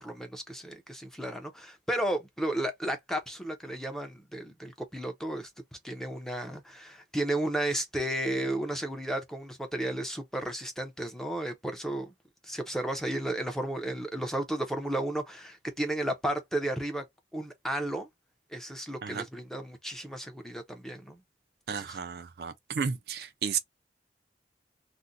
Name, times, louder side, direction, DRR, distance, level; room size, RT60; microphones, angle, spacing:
voice 1, 0.0-5.5 5.8-12.1 12.4-17.0 17.3-18.1 18.5-21.2 21.7-22.0, right 1 dB, 5° left, 0.5 m, -33 dB
voice 2, 21.7-23.6, right 6 dB, 60° right, 0.4 m, -33 dB
2.5 x 2.1 x 3.8 m
head